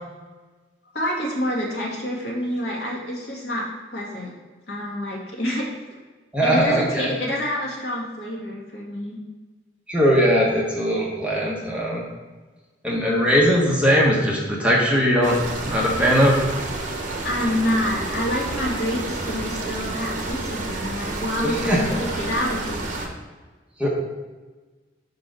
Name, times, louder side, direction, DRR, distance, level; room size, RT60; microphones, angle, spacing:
voice 1, 0.9-4.3 4.7-5.7 6.4-9.2 17.2-23.0, equal, 60° left, -4 dB, 2.1 m, -27 dB
voice 2, 6.3-7.1 9.9-12.0 12.8-15.4 15.7-16.4 21.4-22.0 23.8-23.9, equal, 5° right, -4 dB, 1.0 m, -20 dB
sound 1, 15.2-23.1, right 2 dB, 45° right, 1.1 m, -30 dB
5.2 x 4.6 x 6.1 m, 1.3 s
head